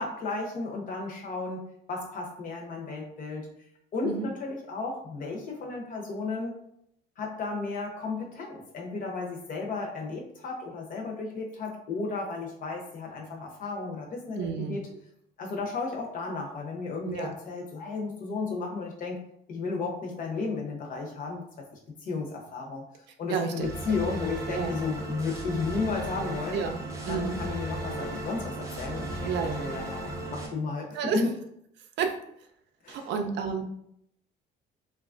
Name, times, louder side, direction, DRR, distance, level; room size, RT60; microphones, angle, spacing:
voice 1, 0.0-1.6 1.9-3.5 3.9-6.6 7.2-14.8 15.4-19.2 19.5-21.4 22.0-22.8 23.2-26.6 27.1-31.3 32.8-33.1, left 4 dB, 45° left, 0 dB, 0.7 m, -33 dB
voice 2, 14.4-14.8 17.1-17.3 23.3-24.7 26.5-27.4 29.2-29.7 30.9-31.2 32.0-32.2 32.9-33.6, right 6 dB, 65° right, 5 dB, 0.4 m, -31 dB
sound 1, 23.6-30.5, right 1 dB, 15° right, 0.6 m, -36 dB
3.0 x 2.3 x 2.4 m, 0.73 s
cardioid pair, 135°, 19 cm